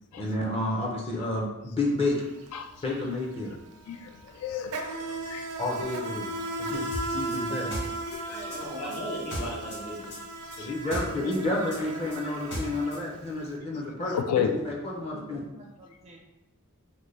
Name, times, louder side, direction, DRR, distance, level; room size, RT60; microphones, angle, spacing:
voice 1, 0.2-2.2 2.8-3.6 5.6-6.3 6.6-7.7 10.6-15.4, left 2 dB, 25° left, -2 dB, 0.5 m, -30 dB
Insect, 2.0-2.2 2.5-13.5, right 2 dB, 85° right, 0.5 m, -36 dB
voice 2, 3.9-5.5 8.1-8.4 10.6-10.7 14.1-14.5, left 9 dB, 90° left, 13 dB, 0.3 m, -32 dB
sound 1, 6.9-9.8 10.1-13.0, equal, 50° left, 1.1 m, -36 dB
voice 3, 7.4-7.8 8.3-9.0 10.8-11.0 14.9-16.2, right 2 dB, 30° right, -2 dB, 0.4 m, -48 dB
voice 4, 8.5-10.1 10.9-11.9 13.7-13.9, equal, 70° left, -2 dB, 0.9 m, -38 dB
3.9 x 2.1 x 3.1 m, 0.95 s
head